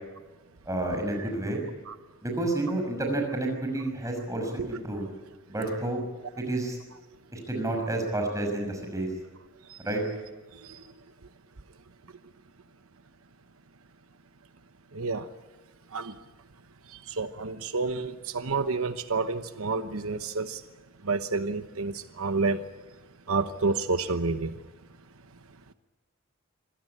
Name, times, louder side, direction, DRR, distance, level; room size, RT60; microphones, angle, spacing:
voice 1, 0.7-1.6 2.2-5.1 5.5-6.0 6.4-6.8 7.3-9.1 9.8-10.0, right 2 dB, 15° right, 2 dB, 5.8 m, -30 dB
voice 2, 10.5-10.8 14.9-15.3 15.9-16.2 16.9-20.6 21.0-22.6 23.3-24.6, right 3 dB, 80° right, 10 dB, 1.0 m, -29 dB
25.0 x 17.5 x 9.9 m, 1.2 s
head